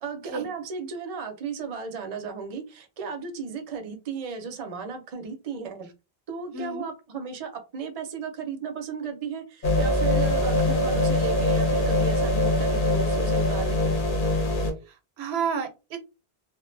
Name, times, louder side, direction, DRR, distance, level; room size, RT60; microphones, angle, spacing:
voice 1, 0.0-5.9 6.3-13.9, right 5 dB, 45° right, 5 dB, 0.5 m, -35 dB
voice 2, 6.5-6.9 14.9-16.0, right 6 dB, 90° right, 7 dB, 0.9 m, -31 dB
sound 1, 9.6-14.7, left 1 dB, 60° left, 0.9 m, -23 dB
2.4 x 2.1 x 2.5 m, 0.29 s
omnidirectional pair, 1.0 m